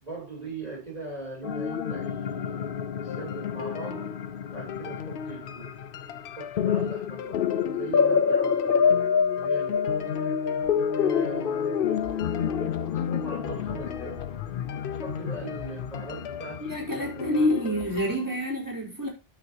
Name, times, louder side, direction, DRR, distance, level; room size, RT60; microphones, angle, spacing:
voice 1, 0.0-4.1 4.5-5.8 6.2-10.2 11.0-14.3 14.9-16.7 17.0-17.3, right 3 dB, 40° right, 3.1 m, -41 dB
sound 1, 1.4-18.1, left 7 dB, 60° left, 0.8 m, -28 dB
sound 2, 3.1-18.4, left 8 dB, 85° left, 1.0 m, -40 dB
voice 2, 16.6-19.1, left 1 dB, 20° right, 3.8 m, -27 dB
9.4 x 7.4 x 2.7 m
omnidirectional pair, 1.1 m